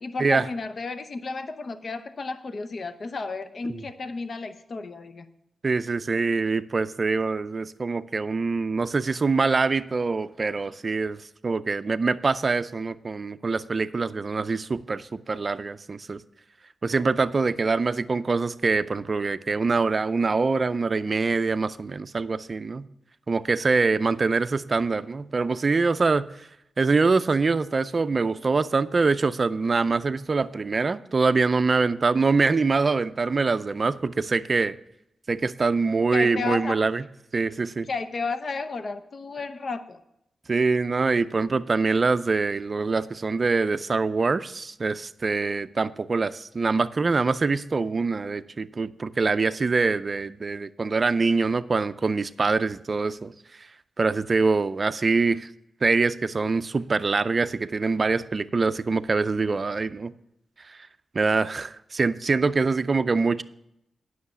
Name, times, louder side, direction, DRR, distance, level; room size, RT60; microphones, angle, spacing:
voice 1, 0.0-5.3 36.1-36.8 37.9-40.0, left 4 dB, 50° left, 11 dB, 0.7 m, -32 dB
voice 2, 5.6-11.2 11.4-16.2 16.8-22.9 23.3-26.3 26.8-34.8 35.3-37.0 37.3-37.9 40.5-53.3 54.0-55.5 55.8-60.1 60.7-60.8 61.1-63.4, right 4 dB, 40° right, 13 dB, 0.4 m, -24 dB
9.5 x 6.4 x 6.8 m, 0.80 s
cardioid pair, 75°, 0 cm